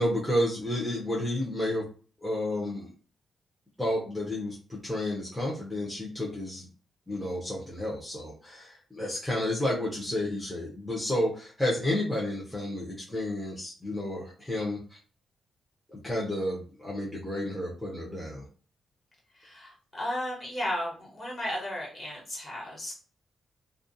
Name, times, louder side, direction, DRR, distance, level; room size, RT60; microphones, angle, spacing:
voice 1, 0.0-1.9 2.2-2.9 3.8-6.6 7.1-15.0 15.9-18.5, left 1 dB, 5° left, -5 dB, 0.7 m, -31 dB
voice 2, 19.3-22.9, left 1 dB, 35° left, -3 dB, 1.2 m, -34 dB
2.4 x 2.2 x 2.6 m, 0.39 s
cardioid pair, 125°, 0 cm